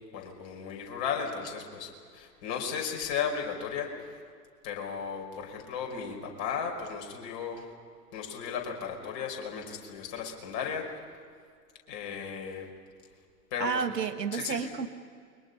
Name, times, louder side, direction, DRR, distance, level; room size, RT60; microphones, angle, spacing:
voice 1, 0.1-4.2 4.6-7.7 8.1-11.0 11.9-12.7 13.5-13.8 14.3-14.7, left 6 dB, 40° left, 1 dB, 5.4 m, -35 dB
voice 2, 13.6-14.9, right 6 dB, 75° right, 8 dB, 1.8 m, -31 dB
29.5 x 24.0 x 5.6 m, 2.1 s
figure-of-eight pair, 105°, 49 cm